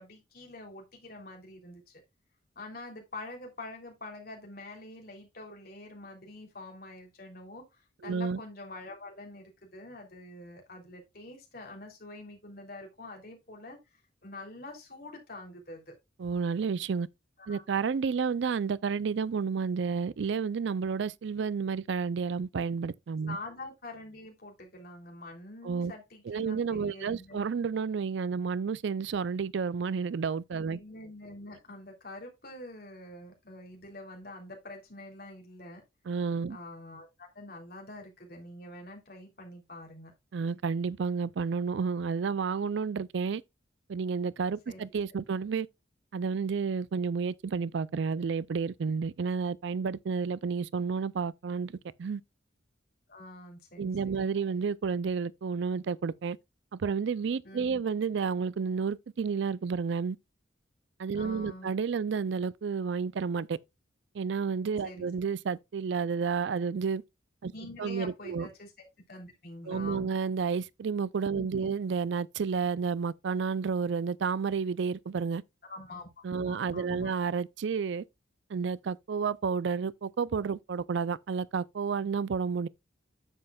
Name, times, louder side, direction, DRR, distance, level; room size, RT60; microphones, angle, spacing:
voice 1, 0.0-2.0 2.5-13.8 14.2-15.9 17.4-17.6 23.3-27.4 30.6-35.8 36.5-40.1 44.7-44.8 53.1-54.3 57.4-57.8 61.1-61.7 64.8-65.1 67.5-70.1 71.3-71.7 75.7-77.1, left 2 dB, 50° left, 3.1 m, -46 dB
voice 2, 8.0-8.4 16.2-17.1 17.5-23.4 25.6-25.9 26.3-30.8 36.1-36.6 40.3-43.4 43.9-45.7 46.1-52.2 53.8-56.4 56.7-60.2 61.0-63.6 64.1-67.0 67.4-67.5 67.8-68.5 69.7-75.4 76.2-78.0 78.5-82.7, right 5 dB, 65° right, 0.4 m, -31 dB
9.8 x 7.6 x 2.3 m
head